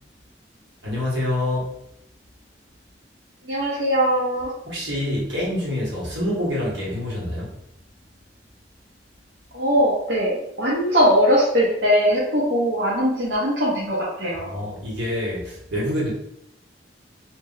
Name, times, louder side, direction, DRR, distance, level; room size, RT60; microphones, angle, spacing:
voice 1, 0.8-1.7 4.7-7.5 14.4-16.1, left 1 dB, 85° right, -5 dB, 1.5 m, -26 dB
voice 2, 3.4-4.5 9.5-14.5, equal, 70° right, -8 dB, 0.9 m, -20 dB
2.7 x 2.6 x 3.9 m, 0.77 s
head